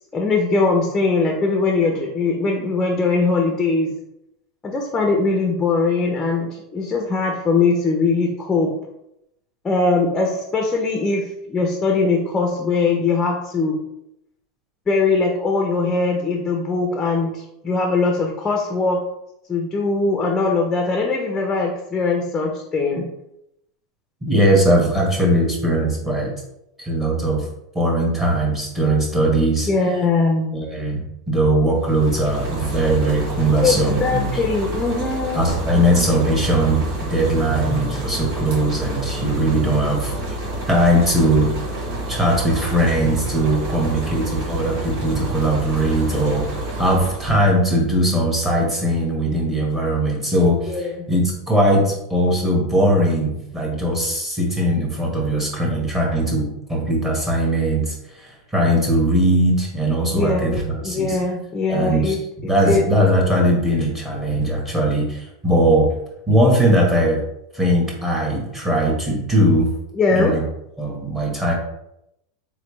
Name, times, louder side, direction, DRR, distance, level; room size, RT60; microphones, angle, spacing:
voice 1, 0.1-3.9 4.6-8.7 9.6-13.8 14.9-19.0 19.5-23.1 29.6-30.6 33.6-35.4 35.8-36.1 50.7-50.9 60.1-62.8 70.0-70.3, left 3 dB, 15° left, 1 dB, 0.6 m, -21 dB
voice 2, 24.3-26.3 26.8-27.4 27.7-29.7 30.5-34.3 35.3-40.1 40.7-41.5 42.1-61.2 61.7-65.9 66.3-67.2 67.5-69.7 70.1-70.4 70.8-71.5, right 1 dB, 10° right, -3 dB, 1.2 m, -20 dB
sound 1, 31.7-47.5, right 1 dB, 60° right, 1.5 m, -29 dB
4.1 x 3.2 x 3.1 m, 0.82 s
supercardioid pair, 140°, 2 cm